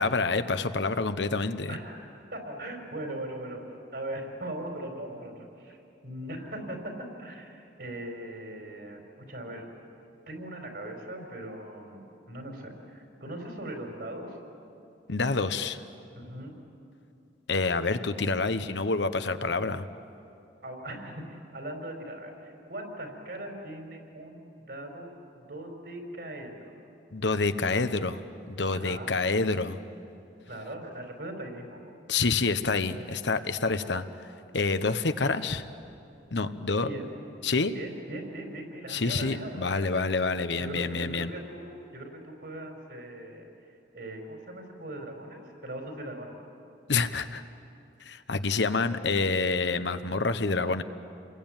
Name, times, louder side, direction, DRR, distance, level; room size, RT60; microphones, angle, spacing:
voice 1, 0.0-1.8 15.1-15.8 17.5-19.9 27.1-29.8 32.1-34.0 34.5-35.6 36.3-36.9 37.4-37.7 38.9-41.3 46.9-47.4 48.0-50.8, left 3 dB, 80° left, 10 dB, 1.1 m, -27 dB
voice 2, 1.7-5.8 6.0-9.7 10.3-14.4 16.1-16.5 20.6-26.8 28.7-29.1 30.5-31.8 36.8-37.0 37.7-40.1 40.6-43.5 43.9-46.4, right 1 dB, 60° right, 3 dB, 4.9 m, -40 dB
28.5 x 22.0 x 9.0 m, 2.7 s
head